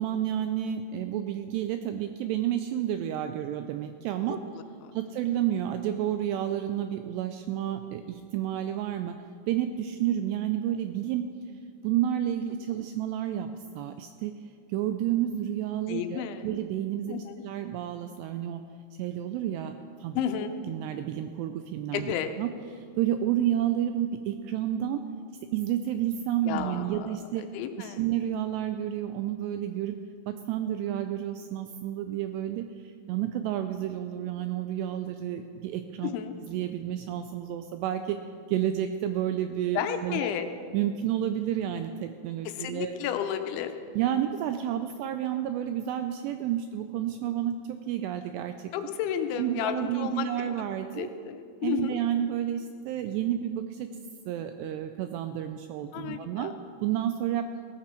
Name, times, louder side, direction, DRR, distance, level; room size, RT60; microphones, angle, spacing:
voice 1, 0.0-4.4 4.9-9.2 9.5-11.3 11.8-13.5 13.8-14.3 14.7-18.6 19.0-19.7 20.0-20.2 20.6-22.5 22.8-25.0 25.5-27.4 27.8-29.9 30.3-36.1 36.5-38.2 38.5-40.3 40.7-42.9 44.0-48.7 49.4-51.1 51.6-53.9 54.3-56.5 56.8-57.5, right 11 dB, 85° right, 8 dB, 2.4 m, -30 dB
voice 2, 15.9-16.5 17.1-17.4 20.1-20.5 21.9-22.3 26.5-27.1 27.5-28.0 36.0-36.3 39.8-40.5 42.5-43.7 48.7-50.5 50.9-52.0 55.9-56.5, left 9 dB, 85° left, 7 dB, 3.1 m, -32 dB
17.5 x 13.5 x 4.5 m, 2.2 s
omnidirectional pair, 5.4 m